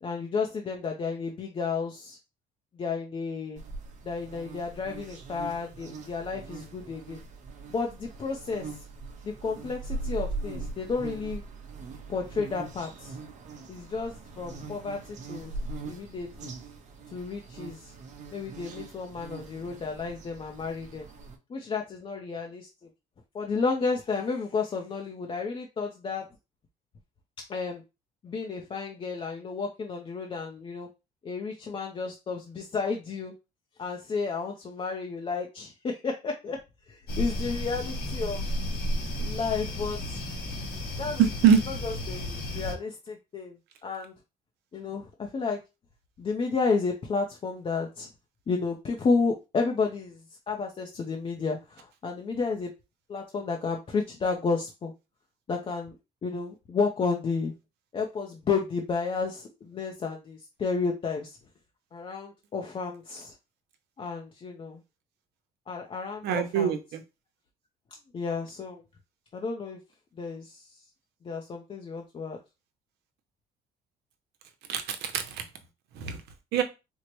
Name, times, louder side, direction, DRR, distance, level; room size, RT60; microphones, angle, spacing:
voice 1, 0.0-2.2 2.8-3.6 4.0-7.2 7.7-8.7 9.2-11.4 12.1-13.2 13.7-15.5 15.9-16.5 17.1-17.9 18.3-21.1 21.5-22.7 23.3-26.3 27.5-27.8 28.2-30.9 31.2-33.3 33.8-36.6 36.9-38.5 39.2-40.2 41.0-41.2 41.7-43.6 43.8-44.1 44.7-45.6 46.2-48.1 48.5-50.2 50.5-52.7 53.1-54.9 55.5-55.9 56.2-57.5 57.9-61.4 61.9-63.3 64.0-64.8 65.7-66.8 68.1-68.8 69.3-69.8 70.2-70.7 71.2-72.4, left 4 dB, 30° left, 1 dB, 0.5 m, -32 dB
Buzzing Insect, 3.6-21.4, right 3 dB, 45° right, 0.8 m, -41 dB
sound 1, 37.1-42.7, left 1 dB, 75° left, 1.7 m, -33 dB
voice 2, 41.2-41.6 66.2-67.0 74.7-75.4 76.0-76.2 76.5-76.6, right 8 dB, 75° right, 8 dB, 0.7 m, -23 dB
4.4 x 2.0 x 2.9 m, 0.27 s
cardioid pair, 110°, 17 cm